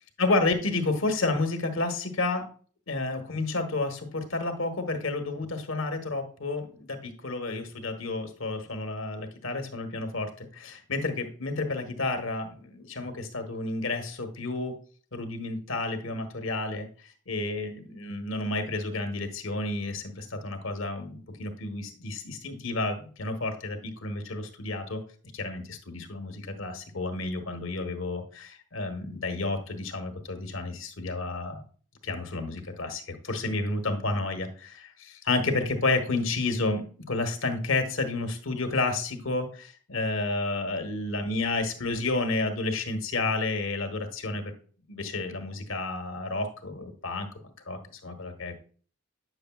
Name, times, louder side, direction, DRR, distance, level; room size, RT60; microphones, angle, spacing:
voice 1, 0.2-2.4 2.9-14.7 15.1-25.0 25.3-31.6 32.0-44.5 44.9-48.6, left 2 dB, 90° left, 6 dB, 1.2 m, -31 dB
9.1 x 6.5 x 2.3 m, 0.42 s
head